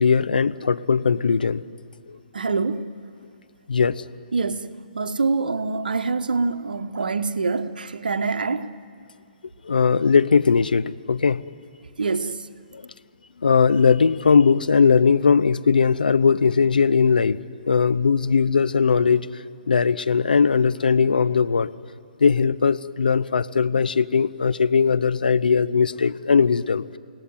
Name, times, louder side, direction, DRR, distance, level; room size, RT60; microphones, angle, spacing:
voice 1, 0.0-1.6 2.1-2.2 3.7-4.1 9.6-11.4 12.7-12.9 13.4-17.4 17.7-21.7 22.2-26.8, left 5 dB, 70° left, 0.8 m, -19 dB
voice 2, 2.3-2.9 4.3-8.7 12.0-12.5, right 4 dB, 70° right, 1.2 m, -25 dB
29.0 x 17.5 x 9.5 m
figure-of-eight pair, 125°, 5 cm